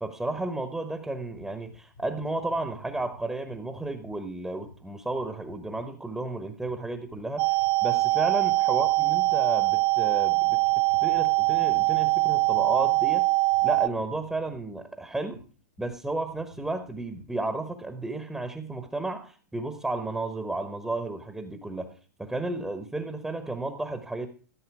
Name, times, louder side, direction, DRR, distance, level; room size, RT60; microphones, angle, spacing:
voice 1, 0.0-10.6 11.0-13.2 13.6-15.4 15.8-21.9 22.2-24.3, right 2 dB, 5° right, 8 dB, 1.1 m, -33 dB
sound 1, 1.3-4.2 4.6-4.8 5.1-5.8 6.6-6.8 7.1-7.2 7.5-7.7 8.8-9.4 10.5-12.9 13.4-14.8 15.3-15.5 15.8-17.4, left 1 dB, 90° left, 4.9 m, -50 dB
sound 2, 7.4-13.9, right 22 dB, 35° right, 0.4 m, -23 dB
14.5 x 7.7 x 4.8 m, 0.39 s
hypercardioid pair, 115°, 9 cm